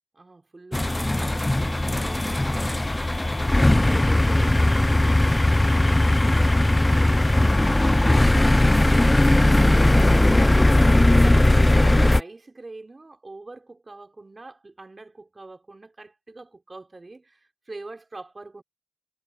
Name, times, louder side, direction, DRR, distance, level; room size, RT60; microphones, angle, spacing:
voice 1, 0.1-2.8 3.2-10.0 10.4-18.6, right 2 dB, 30° right, 5.1 m, -44 dB
sound 1, 0.7-12.2, left 1 dB, 15° left, 0.4 m, -18 dB
cardioid pair, 75°, 0 cm